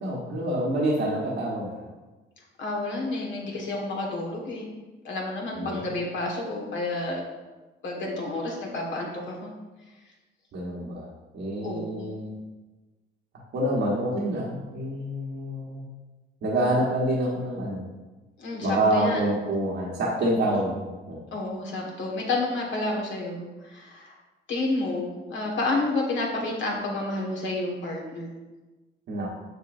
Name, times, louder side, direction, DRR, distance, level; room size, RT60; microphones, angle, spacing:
voice 1, 0.0-1.8 5.5-5.8 10.5-11.1 11.3-12.3 13.5-15.8 16.4-17.8 18.6-21.2 29.1-29.3, right 1 dB, 75° right, -5 dB, 1.4 m, -27 dB
voice 2, 2.6-4.7 5.0-7.2 7.8-9.5 11.6-12.1 18.4-19.4 21.3-24.1 24.5-28.4, left 2 dB, 70° left, -1 dB, 1.8 m, -30 dB
6.7 x 6.0 x 2.7 m, 1.2 s
cardioid pair, 90°, 20 cm